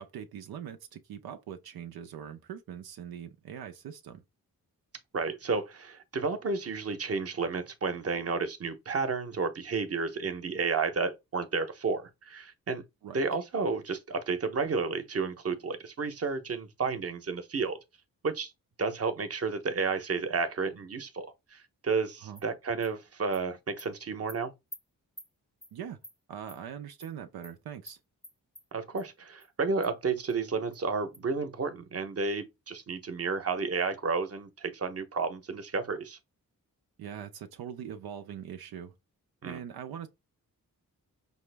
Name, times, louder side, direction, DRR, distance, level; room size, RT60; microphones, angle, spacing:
voice 1, 0.0-4.2 13.0-13.2 22.2-22.4 25.7-26.0 26.3-28.0 37.0-38.9 39.4-40.1, right 9 dB, 90° right, 0.5 m, -42 dB
voice 2, 5.1-12.8 13.1-17.8 18.2-18.5 18.8-24.5 28.7-36.2 39.4-39.6, right 4 dB, 40° right, 0.8 m, -31 dB
Animal, 22.4-22.5 22.8-22.9 23.3-23.4 23.8-23.9 24.3-24.4 24.7-24.8 25.2-25.3 25.6-25.7 26.0-26.2 26.5-26.6 27.0-27.1 27.4-27.5 27.9-28.0 28.2-28.6 29.0-29.1 29.4-29.5 29.8-29.9 30.3-30.4 30.7-30.8 31.1-31.2, equal, 5° left, 0.7 m, -47 dB
5.4 x 2.0 x 3.3 m
cardioid pair, 55°, 36 cm